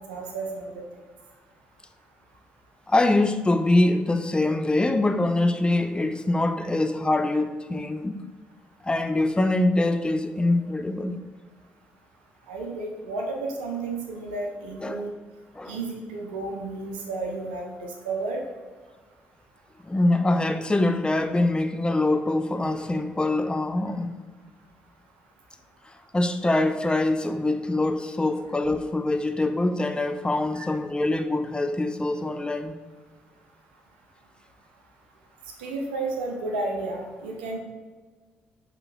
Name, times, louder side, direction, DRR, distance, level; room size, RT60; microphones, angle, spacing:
voice 1, 0.1-0.8 12.5-15.1 15.7-18.4 30.5-30.7 35.6-37.6, right 3 dB, 90° right, 0.6 m, -32 dB
voice 2, 2.9-8.2 8.8-11.2 14.8-15.0 15.6-15.8 19.8-24.1 26.1-32.7, left 2 dB, 20° left, 0.4 m, -24 dB
6.5 x 3.0 x 2.5 m
hypercardioid pair, 45°, 5 cm